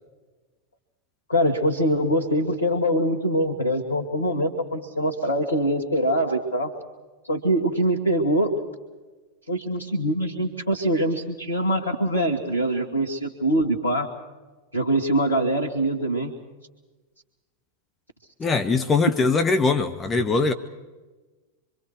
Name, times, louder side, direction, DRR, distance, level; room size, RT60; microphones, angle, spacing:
voice 1, 1.3-6.7 7.3-8.5 9.5-14.1 14.7-16.3, right 1 dB, 75° left, -2 dB, 2.0 m, -23 dB
voice 2, 18.4-20.5, left 4 dB, 20° left, 8 dB, 1.1 m, -21 dB
26.0 x 24.0 x 4.7 m, 1.2 s
figure-of-eight pair, 90°, 0 cm